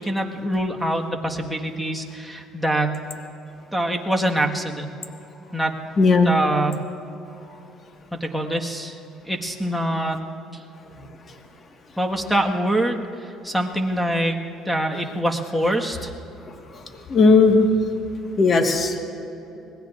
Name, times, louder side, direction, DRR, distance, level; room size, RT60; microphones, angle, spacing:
voice 1, 0.0-3.0 3.7-4.9 5.5-5.7 6.2-6.8 8.1-9.0 9.2-10.2 12.0-14.4 14.6-16.1, right 1 dB, ahead, 0 dB, 1.5 m, -24 dB
voice 2, 6.0-6.3 17.1-17.7 18.4-19.0, left 4 dB, 40° left, 3 dB, 1.6 m, -16 dB
26.0 x 19.5 x 2.5 m, 2.9 s
supercardioid pair, 95°, 0 cm